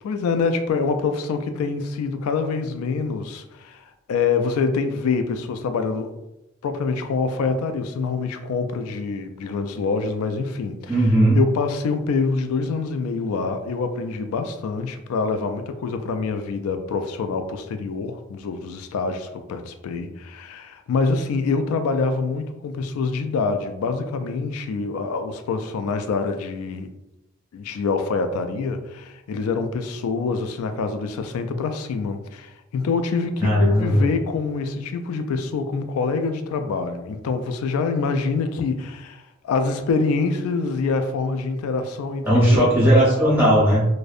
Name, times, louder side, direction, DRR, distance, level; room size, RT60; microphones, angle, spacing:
voice 1, 0.0-6.1 6.6-10.9 11.3-26.9 27.5-42.6, left 4 dB, 90° left, 9 dB, 0.3 m, -25 dB
voice 2, 10.9-11.4 33.4-34.1 42.2-43.9, right 1 dB, 10° right, -7 dB, 0.6 m, -17 dB
2.6 x 2.1 x 2.3 m, 0.93 s
head